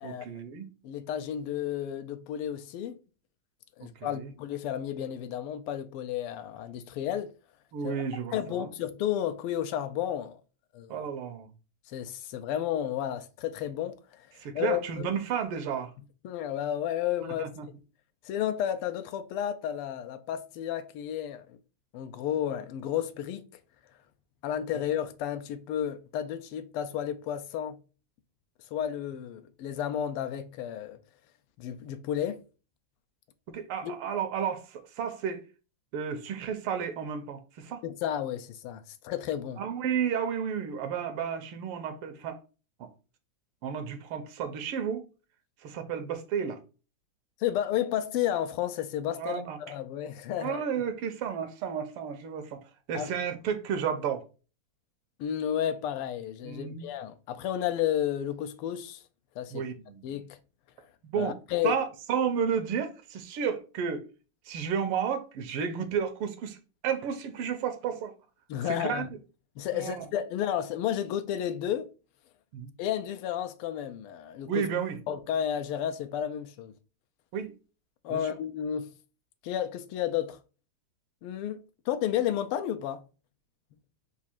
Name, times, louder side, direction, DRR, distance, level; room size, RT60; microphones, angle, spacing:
voice 1, 0.0-0.7 3.8-4.3 7.7-8.7 10.9-11.5 14.4-15.9 17.4-17.7 33.5-35.4 35.9-37.8 39.6-42.4 42.8-42.9 43.6-45.1 45.6-46.6 49.2-49.6 50.4-52.6 52.9-54.2 56.4-56.9 59.5-60.0 61.1-61.4 61.6-64.0 64.5-66.6 66.8-68.1 68.7-69.1 69.7-70.1 72.5-72.7 74.5-75.0 77.3-77.5 78.1-78.2, right 7 dB, 85° right, 1.6 m, -32 dB
voice 2, 0.8-2.9 3.8-7.3 7.8-8.0 8.3-10.4 10.7-11.0 11.9-14.3 14.5-15.1 16.2-17.5 18.2-21.6 21.9-23.5 24.4-27.8 28.7-31.0 31.6-32.4 33.8-33.9 37.8-39.6 47.4-50.6 52.9-53.1 55.2-59.0 59.4-59.6 60.0-60.4 61.2-61.8 68.5-69.1 69.6-71.9 72.8-74.7 75.1-76.7 78.0-78.9 79.4-80.4 81.2-83.0, left 10 dB, 85° left, 1.5 m, -32 dB
4.6 x 2.5 x 4.2 m
omnidirectional pair, 2.4 m